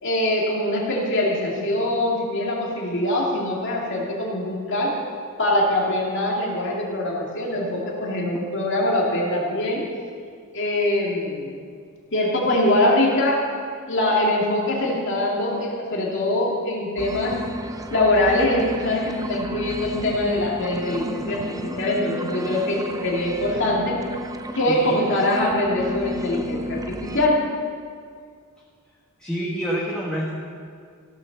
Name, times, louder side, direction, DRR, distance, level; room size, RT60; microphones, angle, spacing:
voice 1, 0.0-5.0 5.4-9.9 10.5-11.5 12.1-13.4 13.9-17.4 17.9-24.0 24.5-27.4, left 1 dB, 55° left, -3 dB, 2.6 m, -23 dB
sound 1, 17.0-27.3, right 1 dB, 15° right, 0.5 m, -32 dB
voice 2, 24.7-25.1 29.2-30.3, equal, 5° left, -6 dB, 1.4 m, -27 dB
15.5 x 7.0 x 6.7 m, 2.1 s
head